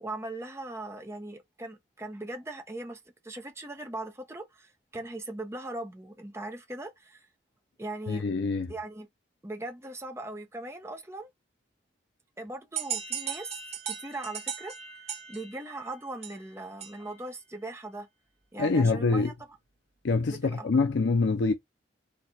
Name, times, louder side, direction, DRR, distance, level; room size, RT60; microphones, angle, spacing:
voice 1, 0.0-7.3 7.8-8.3 8.7-9.1 9.4-11.3 12.4-14.7 15.3-18.1 18.5-19.3 20.3-20.7, right 2 dB, 15° right, 0.8 m, -39 dB
voice 2, 8.1-8.7 18.6-19.3 20.0-21.5, left 3 dB, 70° left, 0.5 m, -25 dB
sound 1, 12.8-17.3, right 8 dB, 35° right, 1.2 m, -38 dB
4.5 x 2.3 x 4.0 m
head